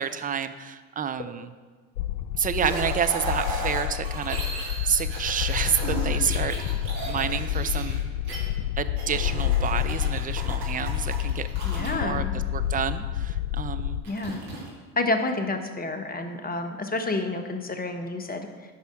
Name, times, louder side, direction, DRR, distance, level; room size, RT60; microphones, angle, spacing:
voice 1, 0.0-1.5 2.4-6.6 7.1-8.0 8.8-11.5 11.8-14.0, right 8 dB, 20° right, 10 dB, 0.5 m, -29 dB
sound 1, 1.9-14.0, left 12 dB, 60° left, 0.6 m, -29 dB
sound 2, 2.6-8.4 9.0-11.9 14.0-14.7, right 3 dB, 85° right, 2.4 m, -35 dB
voice 2, 11.6-12.3 14.0-14.4 15.0-18.5, left 2 dB, 20° left, 6 dB, 1.2 m, -29 dB
9.5 x 5.6 x 6.2 m, 1.4 s
hypercardioid pair, 65°, 49 cm